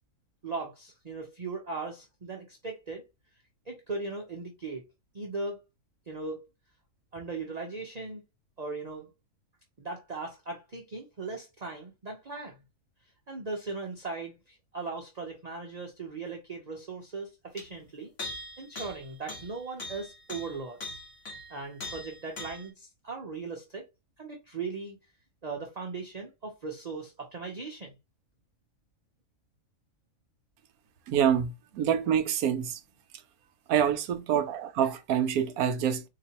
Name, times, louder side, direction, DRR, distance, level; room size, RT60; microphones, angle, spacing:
voice 1, 0.4-3.0 3.7-4.8 5.1-5.6 6.1-6.5 7.1-8.2 8.6-9.1 9.8-12.6 13.3-18.1 18.6-20.8 21.5-23.8 24.2-25.0 25.4-28.0, right 3 dB, 45° right, 0.5 m, -38 dB
sound 1, 17.6-17.7 18.2-22.7, left 2 dB, 50° left, 1.6 m, -41 dB
voice 2, 31.1-32.8 33.7-36.0, right 9 dB, 70° right, 1.0 m, -26 dB
4.1 x 2.9 x 2.8 m
omnidirectional pair, 1.7 m